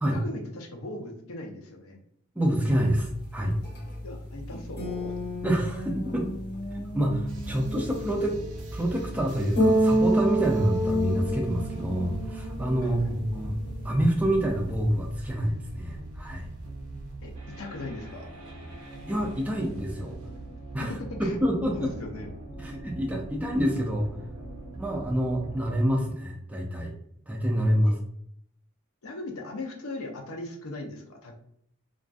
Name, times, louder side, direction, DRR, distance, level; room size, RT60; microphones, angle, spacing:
voice 1, 0.1-2.0 4.0-5.1 12.8-13.2 17.2-18.3 21.2-21.4 21.6-22.3 27.9-28.0 29.0-31.4, left 2 dB, 75° left, 2 dB, 0.6 m, -38 dB
voice 2, 2.4-3.5 5.4-6.3 6.7-8.4 8.7-13.6 13.8-16.5 19.1-20.2 20.7-20.9 21.2-21.9 22.6-24.1 24.8-26.9 27.3-27.9, equal, 5° right, 0 dB, 0.3 m, -27 dB
sound 1, 2.7-15.2, right 1 dB, 45° left, 0.8 m, -30 dB
sound 2, 7.3-25.9, right 2 dB, 85° right, 0.5 m, -42 dB
2.5 x 2.3 x 2.4 m, 0.68 s
head